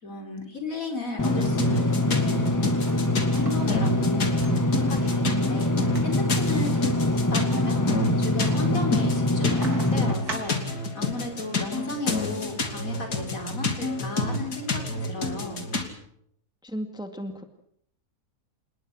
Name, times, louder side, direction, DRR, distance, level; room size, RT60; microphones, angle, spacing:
voice 1, 0.0-2.7 3.3-15.6, left 2 dB, 60° left, 4 dB, 4.9 m, -35 dB
sound 1, 1.2-15.9, left 2 dB, 85° left, 3.3 m, -30 dB
Engine / Mechanisms, 1.2-10.1, left 1 dB, 15° left, 0.9 m, -24 dB
sound 2, 2.9-11.0, right 3 dB, 70° right, 4.0 m, -44 dB
voice 2, 16.6-17.4, equal, 5° right, 7 dB, 1.9 m, -34 dB
28.0 x 20.0 x 6.2 m, 0.68 s
omnidirectional pair, 1.7 m